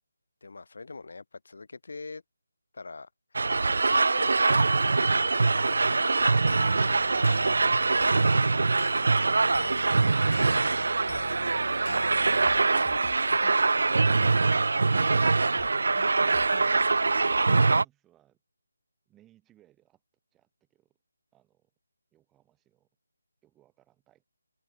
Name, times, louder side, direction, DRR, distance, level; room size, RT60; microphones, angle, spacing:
voice 1, 0.4-2.2 2.7-3.5 4.1-6.2 6.7-7.0 8.5-8.7 9.1-9.7 10.3-10.8 12.7-13.0 14.7-14.9, left 3 dB, 50° left, 2.8 m, -45 dB
sound 1, 3.4-17.8, right 3 dB, 50° right, 0.4 m, -23 dB
sound 2, 6.2-12.6, left 3 dB, 65° left, 5.0 m, -43 dB
sound 3, 11.1-11.5 11.9-12.0 12.3-15.1 15.4-16.7 16.9-17.0, left 9 dB, 20° left, 0.7 m, -48 dB
voice 2, 16.0-18.4 19.1-20.0 20.3-21.0 21.3-21.7 22.1-22.9 23.4-24.2, right 13 dB, 5° right, 5.0 m, -65 dB
open air
figure-of-eight pair, 180°, 0 cm